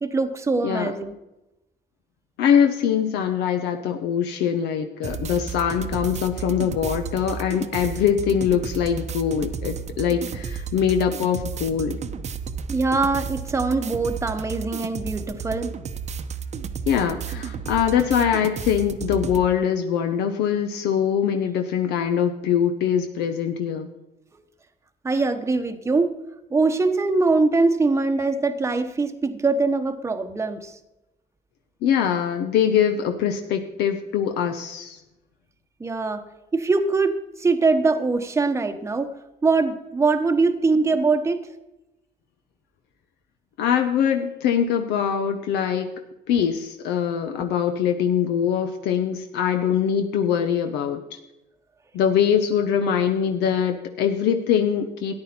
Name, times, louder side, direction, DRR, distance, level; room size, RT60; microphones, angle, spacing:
voice 1, 0.0-1.1 12.7-15.7 25.0-26.1 26.5-30.8 35.8-36.2 36.5-39.1 39.4-41.5, right 3 dB, 15° right, 7 dB, 0.9 m, -22 dB
voice 2, 2.4-12.0 16.9-23.9 31.8-35.0 43.6-45.9 46.3-51.2 51.9-55.1, left 8 dB, 85° left, 6 dB, 0.9 m, -23 dB
sound 1, 5.0-19.5, right 6 dB, 40° right, 0.8 m, -33 dB
13.5 x 9.8 x 4.3 m, 0.96 s
cardioid pair, 110°, 17 cm